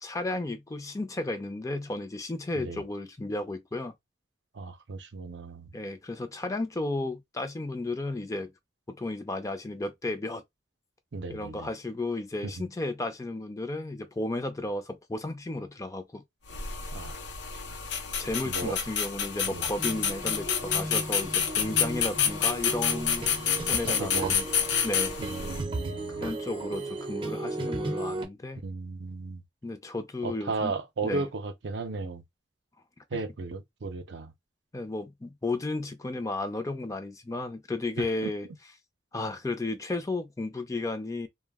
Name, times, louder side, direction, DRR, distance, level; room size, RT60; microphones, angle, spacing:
voice 1, 0.0-3.9 5.7-8.5 8.9-10.4 11.3-16.2 18.2-24.5 24.8-25.2 26.1-28.6 29.6-30.7 31.0-31.2 33.1-33.2 34.7-38.5 39.1-41.3, left 2 dB, 20° left, 0.4 m, -33 dB
voice 2, 4.5-5.7 11.1-11.7 12.4-12.7 16.9-17.1 18.4-18.8 19.5-19.7 21.7-22.1 23.9-24.4 25.2-26.3 28.6-29.4 30.2-32.2 33.1-34.3 38.0-38.3, right 3 dB, 75° right, 0.6 m, -35 dB
sound 1, 16.5-25.6, left 7 dB, 80° left, 0.6 m, -29 dB
sound 2, 19.8-28.3, right 2 dB, 30° right, 0.6 m, -35 dB
2.3 x 2.1 x 3.4 m
head